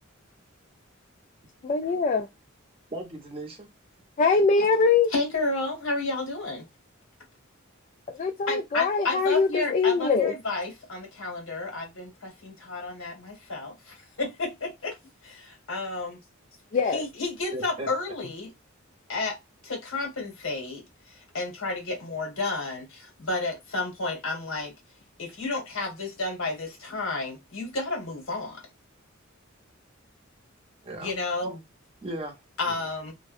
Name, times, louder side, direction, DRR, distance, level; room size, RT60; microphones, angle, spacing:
voice 1, 1.6-2.3 4.2-5.1 8.1-10.3 16.7-17.0, left 4 dB, 35° left, 0.3 m, -23 dB
voice 2, 2.9-3.7 17.5-17.9 30.8-31.1 32.0-32.4 32.6-32.9, right 1 dB, 30° right, 0.7 m, -37 dB
voice 3, 5.1-6.6 8.5-15.0 15.2-16.2 16.9-18.5 19.1-19.4 19.6-24.7 25.2-28.6 31.0-31.6 32.6-33.1, left 3 dB, 80° left, 1.4 m, -31 dB
2.5 x 2.1 x 2.4 m
head